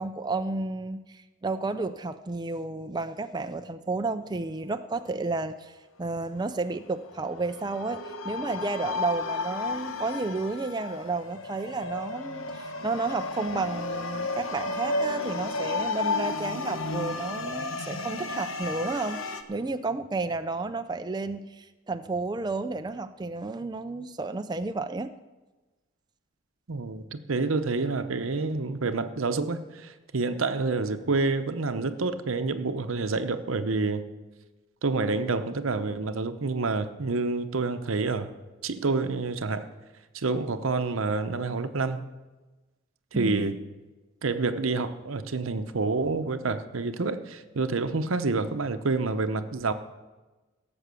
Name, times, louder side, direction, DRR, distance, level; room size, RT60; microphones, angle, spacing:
voice 1, 0.0-19.2 19.5-25.1 43.1-43.6, right 3 dB, 20° right, 9 dB, 0.4 m, -32 dB
sound 1, 7.1-19.4, left 3 dB, 85° left, 1.0 m, -33 dB
voice 2, 26.7-34.1 34.8-38.3 38.6-39.7 40.1-42.0 43.1-43.6 44.2-49.7, right 3 dB, 90° right, 10 dB, 0.8 m, -28 dB
16.5 x 7.1 x 6.9 m, 1.2 s
head